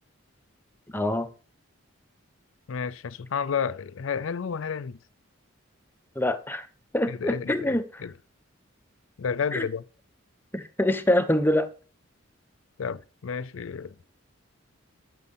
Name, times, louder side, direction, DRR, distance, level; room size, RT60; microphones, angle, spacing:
voice 1, 0.9-1.3 6.2-6.7 6.9-8.0 9.5-9.7 10.5-11.7, left 1 dB, 10° left, 0.9 m, -25 dB
voice 2, 2.7-5.0 7.1-8.1 9.2-9.8 12.8-13.9, left 6 dB, 75° left, 0.5 m, -31 dB
12.5 x 6.5 x 5.6 m
head